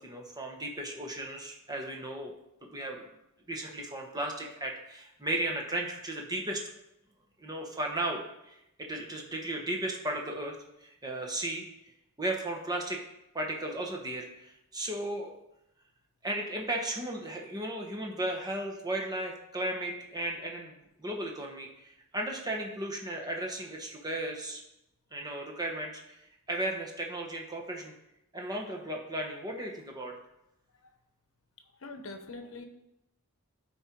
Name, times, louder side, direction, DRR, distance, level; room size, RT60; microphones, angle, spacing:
voice 1, 0.0-2.3 2.6-3.0 3.5-6.6 7.4-10.6 10.8-11.6 12.2-13.0 13.3-15.4 16.2-20.7 21.0-24.6 25.1-27.9 28.3-30.2, right 1 dB, 20° right, 1 dB, 1.2 m, -35 dB
voice 2, 31.6-32.6, left 3 dB, 65° left, 7 dB, 1.0 m, -44 dB
12.0 x 4.4 x 4.6 m, 0.85 s
head